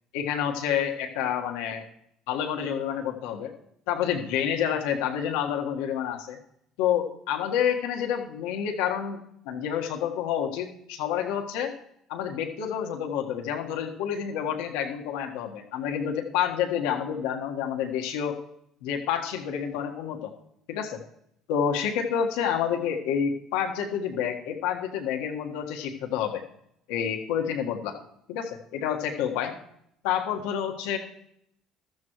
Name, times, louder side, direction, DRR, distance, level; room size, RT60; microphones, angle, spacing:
voice 1, 0.1-1.8 2.3-3.5 3.9-6.4 6.8-11.7 12.1-18.4 18.8-20.3 20.7-21.0 21.5-26.4 26.9-28.0 28.3-29.5 30.0-31.0, left 8 dB, 80° left, 3 dB, 1.6 m, -28 dB
14.5 x 13.0 x 3.1 m, 0.74 s
hypercardioid pair, 70°, 0 cm